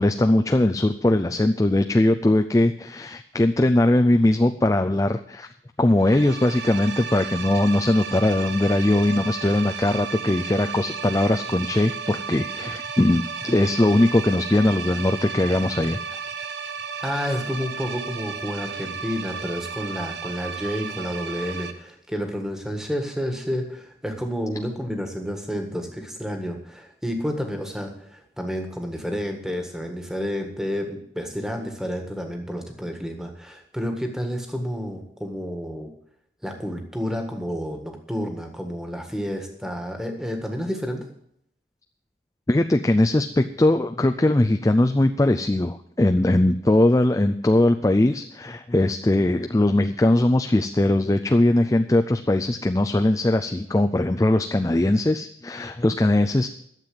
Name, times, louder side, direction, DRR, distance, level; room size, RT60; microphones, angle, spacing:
voice 1, 0.0-5.5 5.8-16.0 42.5-56.5, left 1 dB, 20° left, 6 dB, 0.4 m, -20 dB
sound 1, 6.0-21.7, right 6 dB, 75° right, 1.1 m, -34 dB
voice 2, 17.0-35.9 36.4-41.0, equal, 5° right, 3 dB, 1.6 m, -30 dB
12.0 x 7.5 x 7.7 m, 0.72 s
head